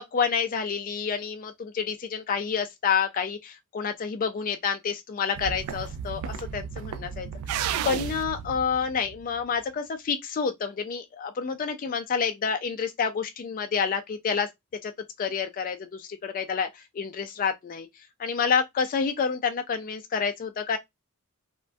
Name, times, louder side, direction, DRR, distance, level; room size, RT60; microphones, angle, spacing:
voice 1, 0.0-14.5 14.8-14.9 15.2-17.9 18.2-20.8, left 6 dB, 40° left, 0.3 m, -29 dB
sound 1, 5.3-9.6, right 8 dB, 85° right, 0.3 m, -33 dB
3.3 x 2.2 x 2.4 m
head